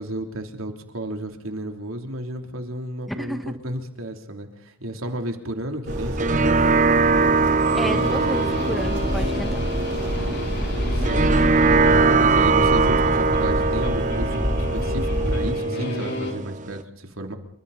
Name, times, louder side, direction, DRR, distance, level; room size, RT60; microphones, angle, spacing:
voice 1, 0.0-6.7 10.0-17.4, right 1 dB, 90° right, 4 dB, 3.4 m, -33 dB
voice 2, 3.2-3.6 7.8-9.6, equal, ahead, 6 dB, 1.7 m, -31 dB
sound 1, 5.9-16.8, right 4 dB, 35° right, 1.0 m, -22 dB
sound 2, 5.9-15.5, equal, 60° right, 7.7 m, -27 dB
sound 3, 7.6-16.3, left 1 dB, 50° left, 5.0 m, -32 dB
27.5 x 25.5 x 4.2 m, 0.69 s
head